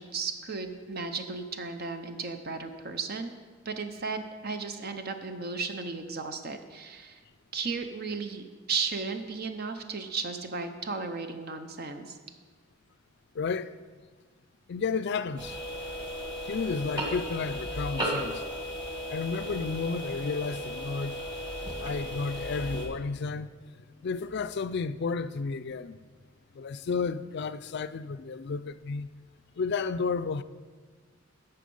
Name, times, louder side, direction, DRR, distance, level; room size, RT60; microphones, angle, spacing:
voice 1, 0.0-3.3 3.6-7.2 7.5-12.2, right 4 dB, 50° right, 0.7 m, -35 dB
voice 2, 13.3-13.7 14.7-15.6 16.4-18.4 19.1-21.2 21.8-26.0 26.5-29.1 29.6-30.4, left 4 dB, 55° left, 0.4 m, -32 dB
sound 1, 15.4-22.9, equal, 20° right, 2.0 m, -35 dB
11.5 x 6.8 x 5.4 m
head